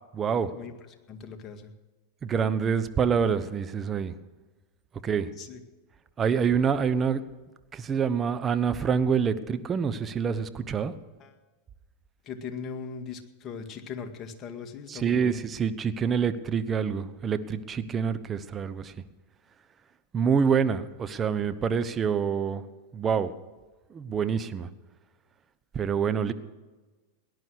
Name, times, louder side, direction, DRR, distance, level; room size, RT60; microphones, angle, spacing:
voice 1, 0.1-0.5 2.2-4.1 5.0-5.3 6.2-7.2 7.7-10.9 14.9-18.9 20.1-22.6 22.9-23.3 23.9-24.7 25.7-26.3, right 6 dB, 25° right, 11 dB, 1.2 m, -26 dB
voice 2, 1.1-1.7 5.4-5.6 11.2-11.4 12.2-15.4, left 6 dB, 35° left, 6 dB, 2.0 m, -39 dB
18.0 x 11.5 x 6.4 m, 1.2 s
hypercardioid pair, 105°, 0 cm